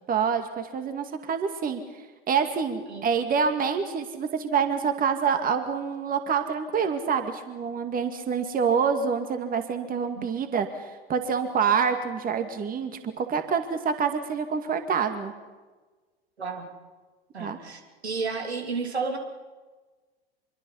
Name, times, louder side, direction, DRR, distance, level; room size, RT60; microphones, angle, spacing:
voice 1, 0.1-1.8 2.3-12.9 13.2-15.3 17.4-17.6, right 6 dB, 25° right, 7 dB, 2.2 m, -26 dB
voice 2, 16.4-16.7 17.3-19.2, right 4 dB, 85° right, 3 dB, 3.2 m, -32 dB
25.5 x 23.5 x 5.7 m, 1.3 s
hypercardioid pair, 90°, 31 cm